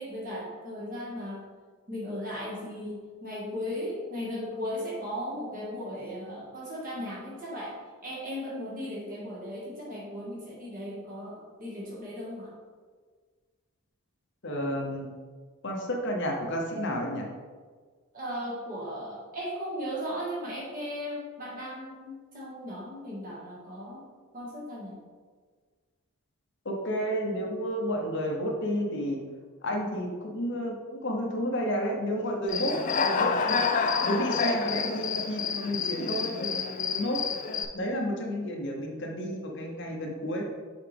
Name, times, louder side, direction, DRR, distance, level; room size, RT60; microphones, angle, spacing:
voice 1, 0.0-1.4 1.9-7.8 8.0-12.5 18.1-24.0 24.3-25.0, equal, 40° right, -5 dB, 1.8 m, -36 dB
voice 2, 14.4-15.1 15.6-17.3 26.6-29.2 29.6-32.8 33.0-33.6 34.0-37.2 37.7-40.4, equal, 50° left, 1 dB, 0.8 m, -31 dB
Human voice / Cricket, 32.5-37.7, left 5 dB, 35° left, 0.3 m, -28 dB
6.9 x 4.3 x 3.4 m, 1.5 s
head